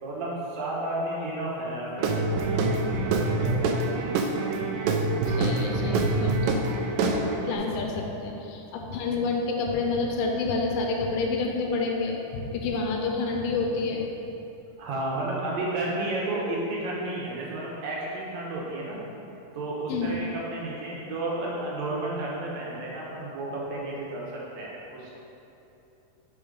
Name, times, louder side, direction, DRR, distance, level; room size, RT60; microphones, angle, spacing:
voice 1, 0.0-3.9 14.8-19.0 19.5-25.1, right 2 dB, 65° right, -5 dB, 2.2 m, -32 dB
Guitar / Drum, 2.0-7.6, right 3 dB, 90° right, 2.2 m, -26 dB
voice 2, 5.3-14.1 19.9-20.2, left 3 dB, 85° left, 1 dB, 2.4 m, -29 dB
5.4 x 5.0 x 5.1 m, 2.9 s
omnidirectional pair, 3.8 m